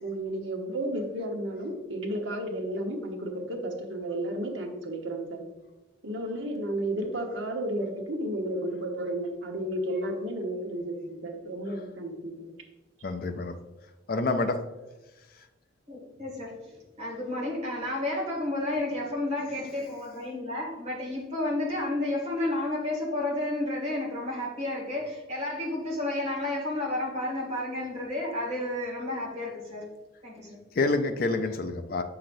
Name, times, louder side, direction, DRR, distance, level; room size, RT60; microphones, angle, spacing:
voice 1, 0.0-5.4 6.0-12.5, right 1 dB, 80° right, 1 dB, 1.1 m, -32 dB
voice 2, 13.0-13.5 14.1-14.6 30.7-32.0, left 3 dB, 50° left, 6 dB, 0.5 m, -27 dB
voice 3, 15.9-29.9 30.2-30.6, left 1 dB, 35° right, -4 dB, 2.1 m, -31 dB
7.5 x 5.8 x 2.6 m, 1.1 s
head